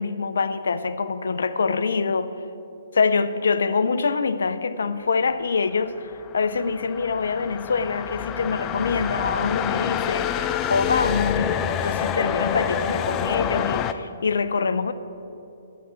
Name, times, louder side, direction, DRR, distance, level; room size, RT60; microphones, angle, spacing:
voice 1, 0.0-2.3 2.9-14.9, left 4 dB, 80° left, 13 dB, 0.5 m, -25 dB
sound 1, 6.0-13.9, left 9 dB, 25° left, 0.4 m, -27 dB
11.0 x 9.3 x 4.3 m, 2.8 s
hypercardioid pair, 140°, 0 cm